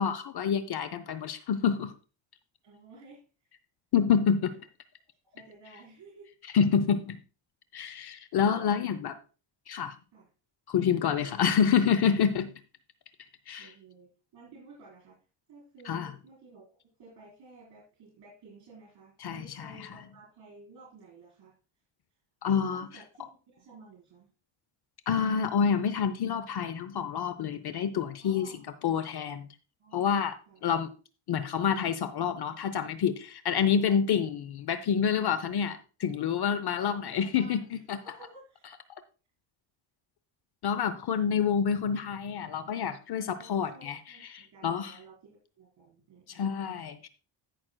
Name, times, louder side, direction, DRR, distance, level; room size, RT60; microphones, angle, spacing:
voice 1, 0.0-1.9 3.9-4.5 6.5-7.2 7.7-9.1 9.7-10.0 10.7-12.5 13.5-13.7 15.9-16.1 19.2-19.9 22.4-22.9 25.1-28.5 28.8-29.5 29.9-30.9 31.3-38.0 40.6-45.0 46.3-47.1, left 7 dB, 55° left, 13 dB, 0.7 m, -28 dB
voice 2, 2.6-3.2 4.3-4.4 5.2-6.3 8.5-8.9 10.1-10.3 11.2-11.6 13.6-15.2 15.5-21.5 22.7-24.3 28.2-28.6 29.8-30.6 33.6-33.8 34.1-34.2 36.8-38.6 43.4-46.6, right 3 dB, 60° right, -4 dB, 4.1 m, -53 dB
16.5 x 6.1 x 2.2 m, 0.35 s
cardioid pair, 105°, 48 cm